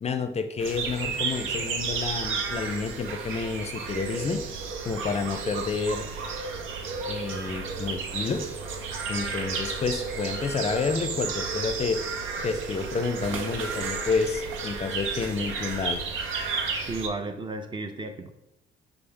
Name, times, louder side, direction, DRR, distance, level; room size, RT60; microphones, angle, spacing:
voice 1, 0.0-4.4 4.8-6.1 7.1-8.5 9.1-12.0 12.4-16.0, left 5 dB, 35° left, 9 dB, 0.5 m, -29 dB
sound 1, 0.6-17.1, right 5 dB, 85° right, 0.6 m, -32 dB
sound 2, 6.4-13.0, left 2 dB, 40° right, 1.3 m, -51 dB
voice 2, 16.9-18.3, right 3 dB, 25° right, 6 dB, 0.6 m, -33 dB
5.2 x 2.0 x 4.5 m, 0.84 s
cardioid pair, 90°, 20 cm